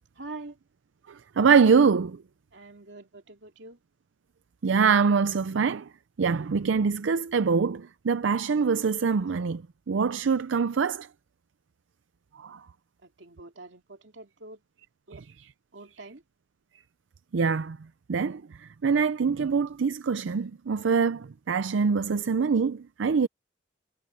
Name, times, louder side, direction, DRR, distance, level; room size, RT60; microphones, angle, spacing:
voice 1, 0.2-0.6 2.5-3.8 13.0-14.6 15.1-15.3 15.7-16.2, right 2 dB, 75° right, 2.7 m, -45 dB
voice 2, 1.4-2.2 4.6-5.9 6.2-9.6 9.9-11.1 12.4-12.6 17.3-17.8 18.1-23.3, right 5 dB, 90° right, 0.5 m, -24 dB
head